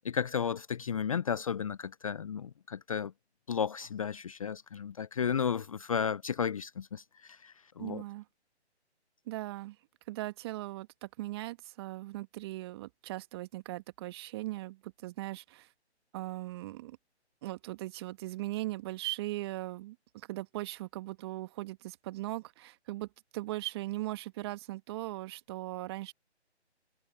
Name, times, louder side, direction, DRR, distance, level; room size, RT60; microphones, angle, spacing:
voice 1, 0.0-3.1 3.5-8.0, left 7 dB, 30° left, 0.7 m, -33 dB
voice 2, 7.8-8.2 9.3-9.8 10.1-15.7 16.1-17.0 17.4-26.1, right 17 dB, 20° right, 1.6 m, -39 dB
figure-of-eight pair, 145°, 34 cm